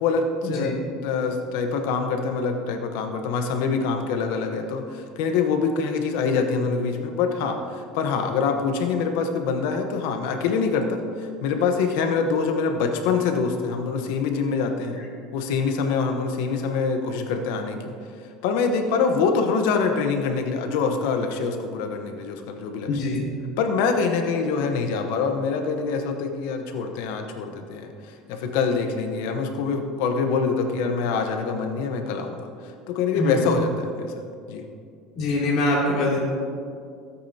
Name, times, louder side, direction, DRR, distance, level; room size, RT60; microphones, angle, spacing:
voice 1, 0.0-15.0 15.3-17.9 18.4-23.0 23.6-34.2 34.5-34.6, left 5 dB, 75° left, 4 dB, 1.0 m, -25 dB
voice 2, 22.9-23.3 33.1-33.4 35.1-36.2, left 2 dB, 50° left, -3 dB, 2.8 m, -24 dB
16.5 x 8.5 x 2.9 m, 2.3 s
cardioid pair, 155°, 0 cm